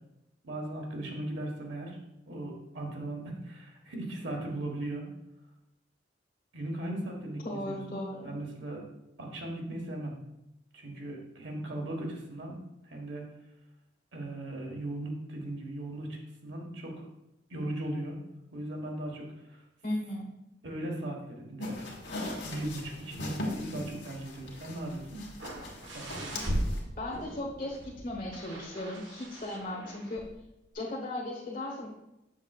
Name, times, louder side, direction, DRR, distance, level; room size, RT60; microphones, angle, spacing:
voice 1, 0.4-2.0 2.3-5.0 6.5-8.0 8.2-8.8 9.2-10.1 10.7-12.5 12.9-13.3 14.1-16.9 17.5-18.2 18.5-19.3 20.6-22.1 22.4-25.2 25.9-26.3, right 1 dB, 70° right, 0 dB, 1.4 m, -38 dB
voice 2, 7.4-8.3 19.8-20.3 27.0-30.2 30.7-31.9, left 1 dB, 50° left, -3 dB, 1.2 m, -36 dB
sound 1, 21.6-26.8, left 1 dB, 65° left, 1.5 m, -40 dB
sound 2, 25.4-30.4 30.7-30.8, equal, 85° right, 1.2 m, -38 dB
7.1 x 6.7 x 2.4 m, 0.89 s
head